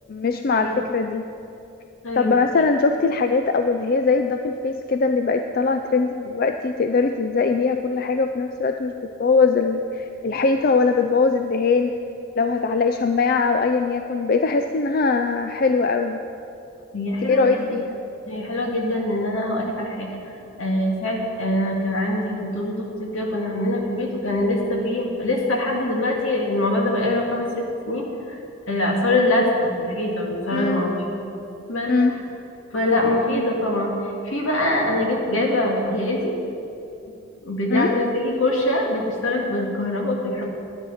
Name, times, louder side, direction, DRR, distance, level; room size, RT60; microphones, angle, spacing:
voice 1, 0.1-1.3 2.2-8.9 9.2-11.9 12.4-16.2 17.2-18.0 30.5-30.8 31.9-32.1 37.7-38.0, left 4 dB, 45° left, 7 dB, 0.4 m, -21 dB
voice 2, 16.9-17.7 18.3-28.4 28.7-31.2 31.7-32.2 32.7-36.3 37.4-40.5, left 1 dB, 75° left, -1 dB, 2.1 m, -24 dB
12.0 x 9.4 x 5.7 m, 2.7 s
head